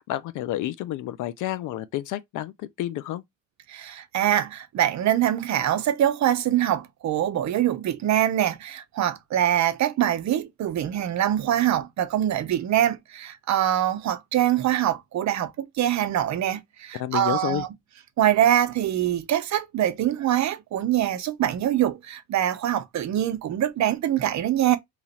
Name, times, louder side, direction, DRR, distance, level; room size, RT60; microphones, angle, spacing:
voice 1, 0.1-3.2 16.9-17.7, left 14 dB, 90° left, 0.5 m, -30 dB
voice 2, 3.7-17.7 18.2-24.8, right 11 dB, 65° right, 0.7 m, -24 dB
2.9 x 2.5 x 4.1 m
cardioid pair, 90°, 30 cm